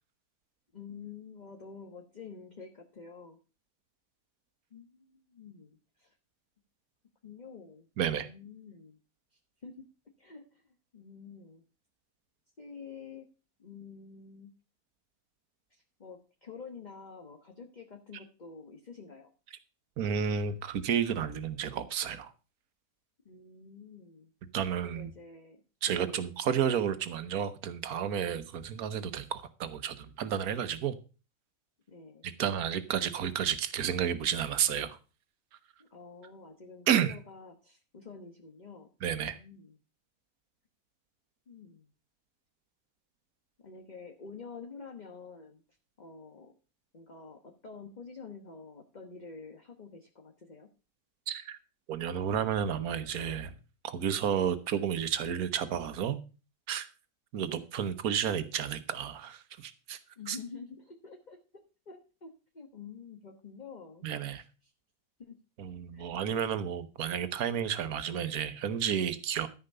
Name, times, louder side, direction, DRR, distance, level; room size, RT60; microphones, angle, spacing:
voice 1, 0.7-3.4 4.7-6.2 7.2-7.9 8.1-9.0 9.3-9.8 10.2-11.6 12.6-13.3 13.6-14.5 15.7-19.3 23.2-24.3 24.8-26.2 31.9-32.3 35.8-39.8 41.5-41.9 43.6-45.6 46.0-46.5 46.9-50.7 60.2-64.1 64.4-64.7 65.2-65.4 65.9-66.2, left 5 dB, 30° left, 4 dB, 1.2 m, -48 dB
voice 2, 8.0-8.3 20.0-22.3 24.5-25.1 25.8-30.9 32.2-35.0 36.9-37.2 39.0-39.4 51.3-51.6 51.9-53.5 53.8-56.2 56.7-56.9 57.3-60.0 60.3-60.4 64.0-64.4 65.6-69.5, right 8 dB, 75° right, 12 dB, 1.5 m, -31 dB
13.5 x 5.2 x 6.6 m, 0.34 s
omnidirectional pair, 1.6 m